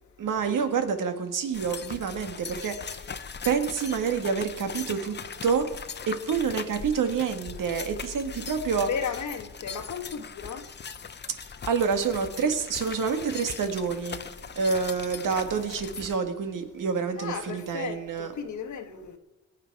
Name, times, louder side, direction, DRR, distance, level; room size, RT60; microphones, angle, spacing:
voice 1, 0.2-3.1 3.4-5.7 6.1-8.9 11.7-14.2 14.6-18.3, right 6 dB, 65° right, 1.8 m, -28 dB
sound 1, 1.5-16.2, left 6 dB, 30° left, 0.7 m, -40 dB
voice 2, 8.8-10.6 17.2-19.2, left 6 dB, 60° left, 1.5 m, -34 dB
21.5 x 9.0 x 4.7 m
cardioid pair, 125°, 34 cm